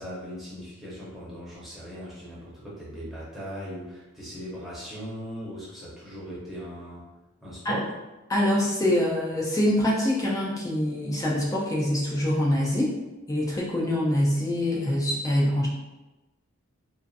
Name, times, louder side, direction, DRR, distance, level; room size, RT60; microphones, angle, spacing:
voice 1, 0.0-7.1 7.4-7.9, equal, ahead, -8 dB, 0.7 m, -39 dB
voice 2, 8.3-12.9 13.3-15.7, left 1 dB, 15° left, -5 dB, 0.4 m, -24 dB
2.6 x 2.4 x 2.4 m, 1.1 s
head